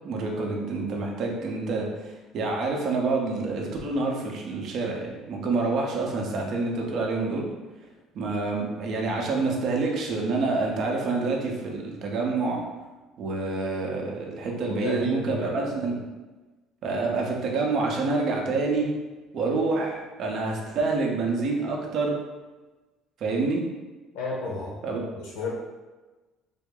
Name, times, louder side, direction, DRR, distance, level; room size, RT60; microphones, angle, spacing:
voice 1, 0.0-7.5 8.1-12.6 13.2-16.0 16.8-18.9 19.3-22.1 23.2-23.6 24.8-25.0, right 3 dB, 50° right, 0 dB, 0.7 m, -27 dB
voice 2, 14.6-15.6 24.1-24.7 25.2-25.5, left 3 dB, 80° left, -4 dB, 0.8 m, -32 dB
3.6 x 2.0 x 3.7 m, 1.2 s
cardioid pair, 130°, 0 cm